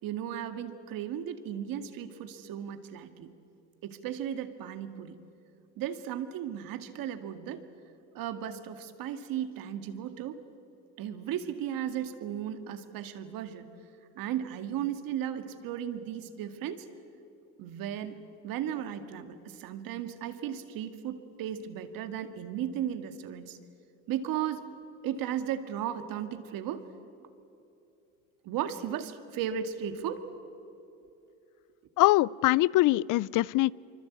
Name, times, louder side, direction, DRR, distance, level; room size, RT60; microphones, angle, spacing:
voice 1, 0.0-3.3 3.8-5.2 5.8-7.6 8.1-10.4 11.0-13.6 14.2-16.8 17.6-18.2 18.4-23.6 24.1-24.7 25.0-26.8 28.4-30.2, right 10 dB, 70° right, 9 dB, 2.1 m, -35 dB
voice 2, 32.0-33.7, left 18 dB, 60° left, 23 dB, 0.5 m, -23 dB
25.0 x 24.5 x 8.5 m, 2.8 s
supercardioid pair, 90°, 36 cm